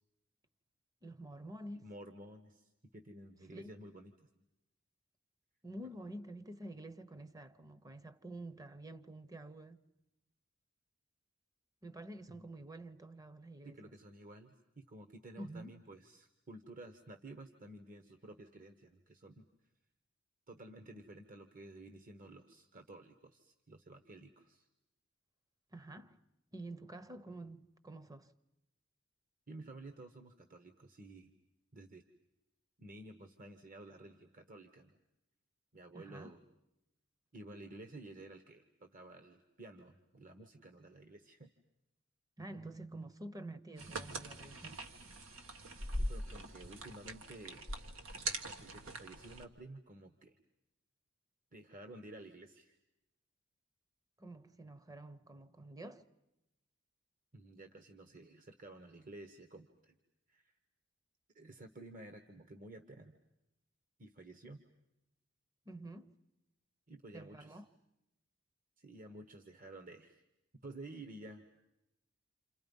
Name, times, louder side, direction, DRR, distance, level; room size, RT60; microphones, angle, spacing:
voice 1, 1.0-1.9 3.5-3.7 5.6-9.8 11.8-13.9 15.4-15.7 25.7-26.2 26.5-28.3 35.9-36.4 42.4-44.8 54.2-56.0 65.7-66.1 67.1-67.7, right 1 dB, 20° right, 0.9 m, -48 dB
voice 2, 1.8-4.4 12.3-12.5 13.6-19.5 20.5-24.7 29.5-31.3 31.7-32.0 32.8-35.0 35.7-36.4 37.3-41.5 45.9-47.7 48.6-50.4 51.5-52.8 57.3-60.0 60.3-60.5 61.3-63.2 64.0-64.6 66.9-67.6 68.8-70.2 70.6-71.5, right 2 dB, 45° right, 1.3 m, -53 dB
sound 1, 43.8-49.4, right 1 dB, 85° right, 1.7 m, -42 dB
29.0 x 28.0 x 5.4 m
head